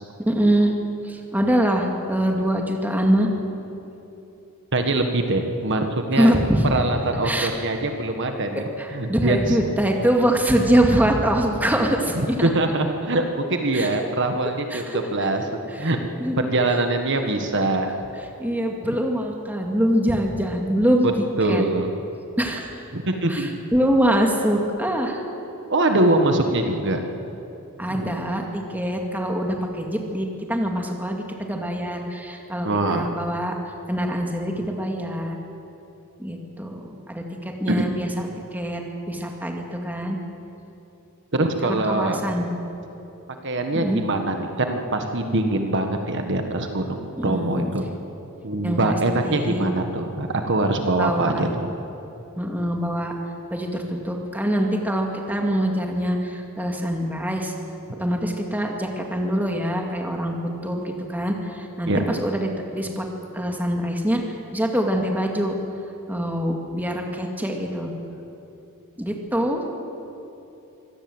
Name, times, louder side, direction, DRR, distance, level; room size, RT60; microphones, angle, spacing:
voice 1, 0.2-0.7 1.0-3.3 6.2-6.6 7.2-7.5 8.5-12.5 13.7-13.9 14.7-15.0 15.8-15.9 16.2-16.5 18.4-21.1 21.4-21.6 22.4-22.7 23.3-25.2 27.8-33.5 33.9-35.4 36.2-38.3 38.5-38.8 39.1-40.2 41.6-42.5 43.7-44.0 47.1-47.7 48.6-49.0 49.2-49.6 51.0-51.4 52.4-53.1 53.5-57.5 58.0-60.4 60.6-63.1 63.3-64.2 64.5-65.5 66.1-67.9 69.0-69.6, equal, 10° right, 1 dB, 2.3 m, -24 dB
voice 2, 4.7-6.3 6.6-8.6 8.9-9.6 12.4-15.5 15.8-16.0 16.4-17.9 18.9-19.0 21.0-21.1 21.4-21.9 22.9-23.5 25.7-27.0 27.9-28.2 32.6-33.1 34.6-34.7 37.7-37.8 41.3-42.2 43.4-47.8 48.4-51.7 61.9-62.0, right 2 dB, 55° right, 5 dB, 1.5 m, -23 dB
25.0 x 18.0 x 8.0 m, 3.0 s
head